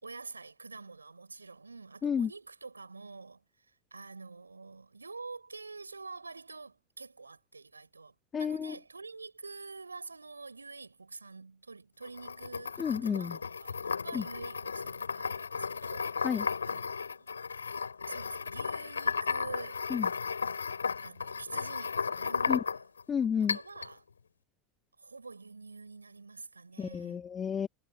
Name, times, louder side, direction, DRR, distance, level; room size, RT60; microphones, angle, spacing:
voice 1, 0.0-17.3 18.1-19.9 21.0-22.9 23.4-24.0 25.0-27.3, right 4 dB, 85° right, 5.8 m, -47 dB
voice 2, 8.3-8.7 12.8-13.4 14.1-14.2 16.2-16.5 19.9-20.1 22.5-22.6 23.1-23.6 26.8-27.7, left 7 dB, 25° left, 2.0 m, -31 dB
sound 1, 12.0-23.0 23.5-23.9, left 5 dB, 80° left, 3.7 m, -34 dB
figure-of-eight pair, 80°, 0 cm